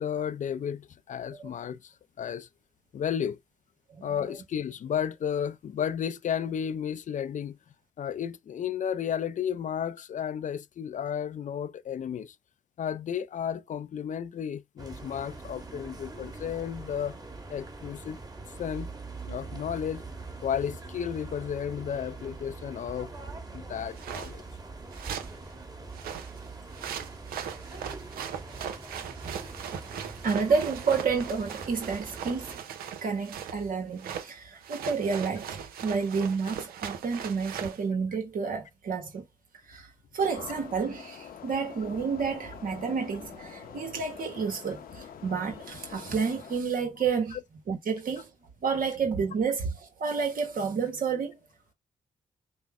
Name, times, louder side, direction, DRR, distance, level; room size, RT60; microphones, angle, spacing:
voice 1, 0.0-2.5 2.9-3.4 4.0-7.6 8.0-12.4 12.8-17.2 17.5-18.2 18.6-18.9 19.3-20.0 20.4-23.1 23.5-24.4 47.3-47.4, left 8 dB, 55° left, 0.4 m, -33 dB
sound 1, 14.8-32.6, right 3 dB, 25° right, 1.6 m, -43 dB
sound 2, 23.9-24.3 24.9-25.4 25.9-33.6 34.0-34.3 34.6-37.8, right 8 dB, 80° right, 0.7 m, -39 dB
voice 2, 30.2-32.6 33.0-39.2 39.6-47.4 47.7-48.3 48.6-51.4, right 5 dB, 65° right, 1.1 m, -30 dB
sound 3, 40.2-46.6, left 8 dB, 75° left, 0.8 m, -46 dB
5.2 x 2.1 x 3.5 m
supercardioid pair, 40°, 15 cm